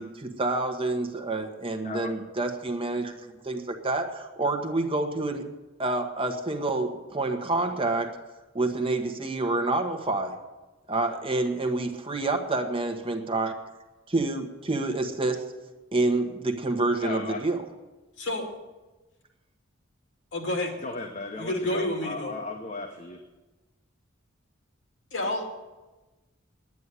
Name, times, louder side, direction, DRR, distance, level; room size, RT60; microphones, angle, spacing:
voice 1, 0.0-5.4 5.8-8.2 8.5-10.4 10.9-13.5 14.1-15.4 15.9-17.6, right 2 dB, 25° right, 5 dB, 1.2 m, -28 dB
voice 2, 1.8-2.1 17.0-17.4 20.8-23.2, left 3 dB, 35° left, 3 dB, 1.1 m, -36 dB
voice 3, 18.2-18.5 20.3-20.8 21.4-22.4 25.1-25.5, left 1 dB, 65° left, 2 dB, 2.7 m, -29 dB
10.5 x 9.7 x 9.8 m, 1.1 s
head